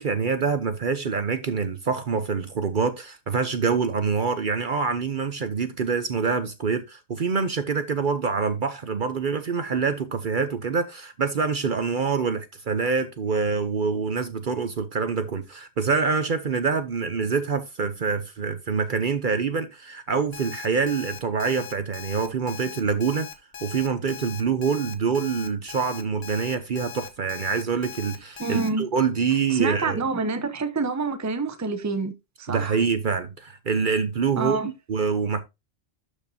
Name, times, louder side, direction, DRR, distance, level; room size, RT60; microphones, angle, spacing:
voice 1, 0.0-23.3 23.6-30.0 32.5-34.6 34.9-35.4, right 5 dB, 50° right, 0.9 m, -25 dB
Alarm, 20.3-28.7, left 8 dB, 65° left, 1.3 m, -40 dB
voice 2, 28.4-28.9 29.5-32.1 32.4-32.8 34.4-34.7, right 4 dB, 15° right, 0.8 m, -27 dB
12.0 x 5.0 x 2.7 m
omnidirectional pair, 1.2 m